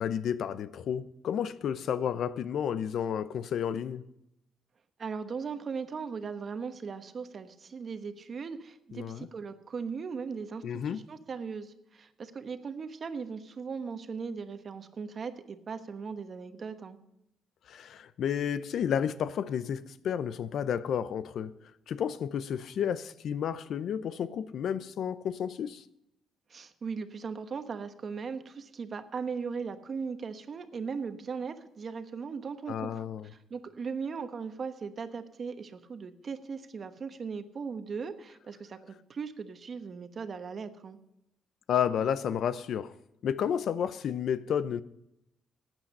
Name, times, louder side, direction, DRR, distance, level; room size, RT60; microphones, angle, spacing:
voice 1, 0.0-4.0 8.9-9.3 10.6-11.0 17.7-21.5 21.9-25.8 32.7-33.3 41.7-42.9 43.2-44.8, left 8 dB, 65° left, 0.6 m, -31 dB
voice 2, 5.0-17.0 26.5-32.9 33.2-41.0, right 5 dB, 45° right, 1.1 m, -38 dB
13.5 x 9.0 x 5.4 m
cardioid pair, 90°, 0 cm